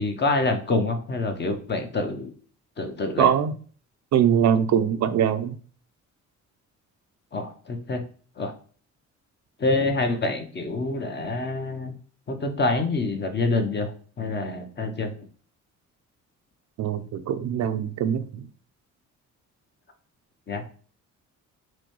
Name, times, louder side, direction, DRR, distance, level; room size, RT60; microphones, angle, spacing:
voice 1, 0.0-2.3 2.8-3.3 7.3-8.0 8.4-8.5 9.6-11.9 12.3-13.9 14.2-15.1 20.5-20.7, left 2 dB, 35° left, 0.8 m, -26 dB
voice 2, 3.2-3.5 4.1-5.6 16.8-18.5, right 9 dB, 65° right, 0.5 m, -22 dB
5.9 x 2.2 x 3.0 m
cardioid pair, 90°, 30 cm